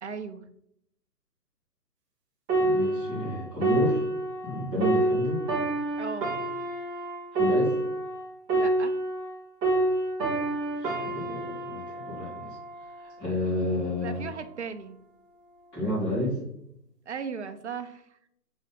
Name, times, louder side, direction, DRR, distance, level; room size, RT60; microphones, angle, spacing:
voice 1, 0.0-0.4 6.0-6.3 8.5-8.9 14.0-15.0 17.1-18.3, right 6 dB, 45° right, 7 dB, 1.0 m, -37 dB
sound 1, 2.5-9.3 9.6-13.2 13.8-14.0, right 2 dB, 10° right, 1.5 m, -28 dB
voice 2, 2.6-4.0 4.4-5.4 7.3-7.8 10.7-12.6 13.0-14.3 15.7-16.4, left 1 dB, 10° left, -10 dB, 4.1 m, -30 dB
9.0 x 5.3 x 5.9 m, 0.76 s
hypercardioid pair, 165°, 49 cm